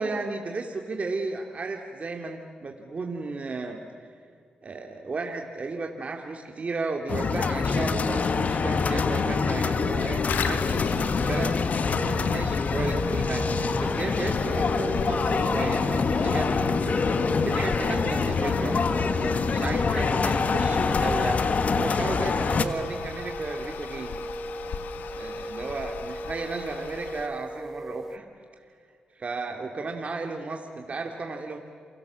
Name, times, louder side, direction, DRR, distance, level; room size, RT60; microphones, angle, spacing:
voice 1, 0.0-3.8 4.6-11.5 11.8-18.8 19.2-21.4 21.7-24.2 25.1-28.3 29.1-31.6, right 3 dB, 50° right, 2 dB, 2.4 m, -34 dB
sound 1, 7.1-22.7, left 5 dB, 60° left, 1.5 m, -25 dB
Toilet flush, 10.3-27.3, left 7 dB, 85° left, 1.1 m, -38 dB
sound 2, 12.9-28.2, right 1 dB, 10° right, 1.2 m, -36 dB
28.5 x 23.5 x 7.4 m, 2.3 s
cardioid pair, 60°, 3 cm